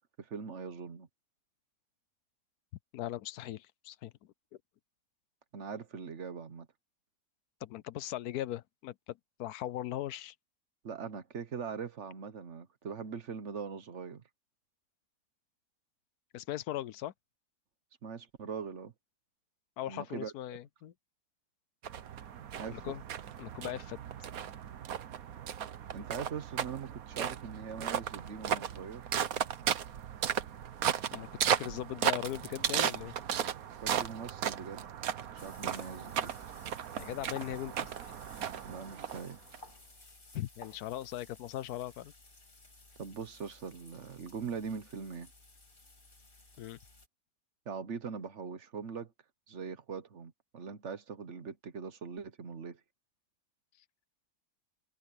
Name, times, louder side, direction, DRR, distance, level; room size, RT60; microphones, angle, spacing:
voice 1, 0.2-1.1 5.5-6.7 10.8-14.2 18.0-18.9 19.9-20.3 22.6-22.8 25.9-29.1 33.4-33.5 33.8-34.8 35.4-36.4 38.6-39.4 43.0-45.3 47.7-49.1 49.5-52.8, right 6 dB, 55° right, 1.3 m, -41 dB
voice 2, 2.9-4.1 7.6-10.3 16.3-17.1 19.8-20.9 22.7-23.0 23.4-24.0 31.1-33.1 37.0-37.9 40.3-42.1 46.6-46.8, left 13 dB, 90° left, 1.2 m, -39 dB
sound 1, 21.8-39.6, right 9 dB, 70° right, 1.4 m, -35 dB
sound 2, 35.4-47.1, left 2 dB, 35° left, 2.9 m, -56 dB
omnidirectional pair, 1.6 m